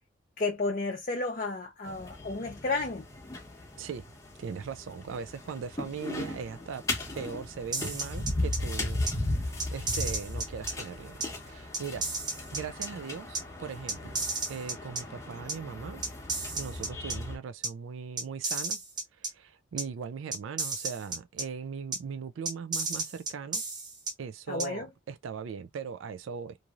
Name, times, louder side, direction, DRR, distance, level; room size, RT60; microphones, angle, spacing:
voice 1, 0.4-3.0 24.5-24.9, left 3 dB, 40° left, 0.5 m, -32 dB
sound 1, 1.8-17.4, left 2 dB, 15° left, 0.8 m, -37 dB
voice 2, 3.8-4.1 4.4-6.8 7.1-12.0 12.5-14.2 14.5-16.0 16.5-18.8 19.1-23.6 24.2-26.6, right 6 dB, 75° right, 0.4 m, -39 dB
sound 2, 7.7-8.6 9.1-9.2 9.6-10.7 11.2-11.3 11.7-12.9 13.3-13.4 13.9-15.0 15.5-15.6 16.0-17.2 17.6-17.7 18.2-19.3 19.8-19.9 20.3-21.4 21.9-22.0 22.4-24.1 24.6-24.7, right 3 dB, 20° right, 0.7 m, -33 dB
3.0 x 2.6 x 2.4 m
head